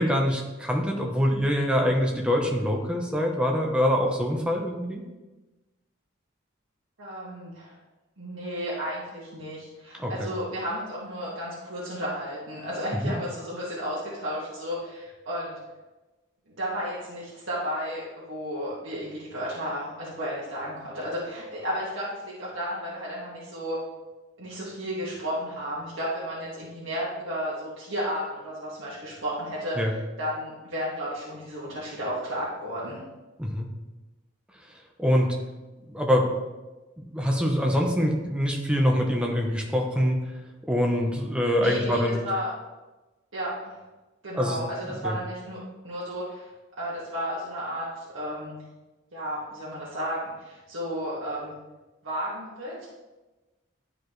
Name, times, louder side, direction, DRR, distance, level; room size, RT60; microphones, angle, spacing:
voice 1, 0.0-5.0 10.0-10.3 13.0-13.1 29.8-29.9 33.4-33.7 35.0-35.3 35.9-36.3 37.0-40.2 40.7-42.2 44.3-44.6 45.0-45.1, equal, 5° right, 0 dB, 0.8 m, -24 dB
voice 2, 7.0-7.8 8.2-15.6 16.5-23.8 24.4-33.0 41.6-42.5 43.3-43.8 44.2-45.6 45.8-46.5 46.8-48.6 49.1-51.5 52.0-52.9, equal, 75° right, -8 dB, 1.9 m, -33 dB
11.0 x 4.9 x 3.2 m, 1.1 s
head